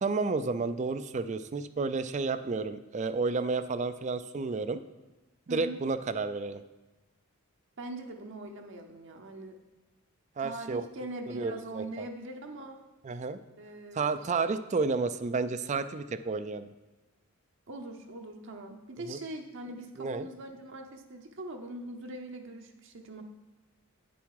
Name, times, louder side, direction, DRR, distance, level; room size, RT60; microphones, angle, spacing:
voice 1, 0.0-4.8 5.5-6.6 10.4-10.9 11.3-12.1 13.0-13.4 13.9-16.7 19.1-19.2 20.0-20.3, right 4 dB, 30° right, 13 dB, 0.3 m, -31 dB
voice 2, 5.5-5.8 7.8-9.6 10.4-12.8 13.6-14.3 17.7-23.2, right 1 dB, 55° right, 3 dB, 0.7 m, -42 dB
9.3 x 7.0 x 4.8 m, 1.1 s
head